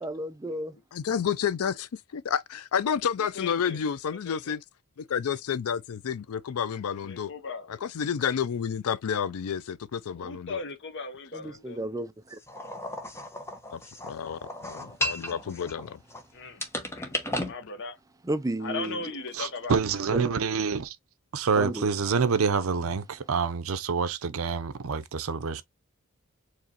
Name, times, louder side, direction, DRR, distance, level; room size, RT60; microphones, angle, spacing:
voice 1, 0.0-0.7 11.3-12.4 18.2-19.1 20.1-20.3 21.6-21.9, right 1 dB, 15° right, 0.4 m, -33 dB
voice 2, 0.9-4.6 5.0-7.3 7.8-10.6 13.7-13.8 14.1-16.0, left 7 dB, 80° left, 0.4 m, -30 dB
voice 3, 3.2-3.8 4.3-4.6 7.0-7.8 10.1-11.8 15.5-15.6 16.3-16.7 17.0-17.2 17.5-18.0 18.6-19.8, left 4 dB, 55° left, 0.9 m, -38 dB
sound 1, 12.5-16.2 16.6-17.5, left 1 dB, 10° left, 1.0 m, -34 dB
voice 4, 19.3-21.0 21.3-25.6, right 5 dB, 70° right, 0.6 m, -27 dB
4.7 x 3.0 x 2.9 m
head